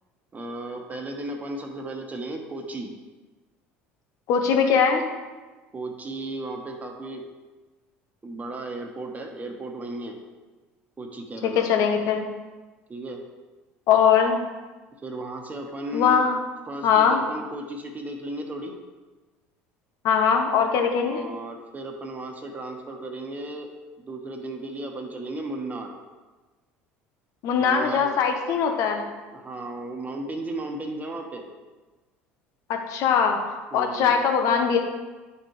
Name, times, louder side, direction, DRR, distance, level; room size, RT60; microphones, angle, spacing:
voice 1, 0.3-2.9 5.7-7.2 8.2-10.2 11.0-11.6 12.9-13.2 15.0-16.3 16.7-18.8 21.0-25.9 27.6-28.2 29.3-31.5 33.7-34.2, right 2 dB, 25° right, 2 dB, 1.3 m, -35 dB
voice 2, 4.3-5.0 11.4-12.3 13.9-14.4 15.9-16.4 16.8-17.2 20.0-21.2 27.4-29.0 32.7-34.8, left 7 dB, 60° left, 4 dB, 1.0 m, -21 dB
10.0 x 4.6 x 3.2 m, 1.3 s
hypercardioid pair, 70°, 6 cm